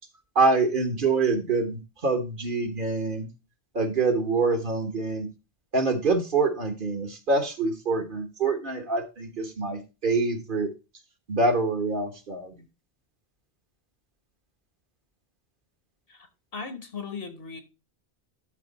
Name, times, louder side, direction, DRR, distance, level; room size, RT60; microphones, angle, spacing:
voice 1, 0.3-3.3 3.7-5.3 5.7-10.7 11.3-12.6, right 3 dB, 55° right, 1.5 m, -25 dB
voice 2, 16.1-17.6, left 5 dB, 65° left, 1.5 m, -38 dB
12.5 x 4.2 x 4.1 m
omnidirectional pair, 1.1 m